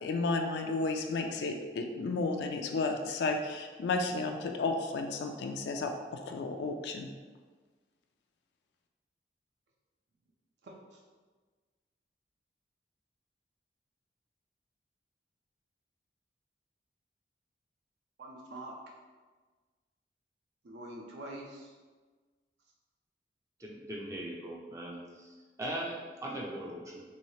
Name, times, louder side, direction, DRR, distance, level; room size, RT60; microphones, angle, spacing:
voice 1, 0.0-7.1, left 3 dB, 75° left, 4 dB, 0.3 m, -33 dB
voice 2, 10.6-11.0 18.2-18.8 20.6-21.8, right 1 dB, 75° right, -2 dB, 0.5 m, -45 dB
voice 3, 23.6-27.0, right 1 dB, 15° right, -2 dB, 0.3 m, -40 dB
3.1 x 3.1 x 2.7 m, 1.4 s
head